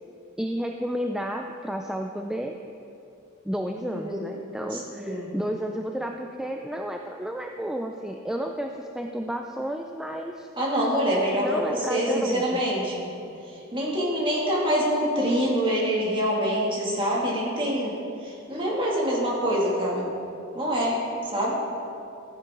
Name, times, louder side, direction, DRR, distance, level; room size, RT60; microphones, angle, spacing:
voice 1, 0.4-2.6 3.4-10.5 11.3-12.6, equal, 5° right, 3 dB, 0.4 m, -31 dB
voice 2, 4.7-5.3 10.6-13.1 13.7-17.9 18.2-20.1 20.5-21.0 21.3-21.6, equal, 25° right, -5 dB, 2.4 m, -25 dB
14.0 x 9.8 x 3.8 m, 2.7 s
head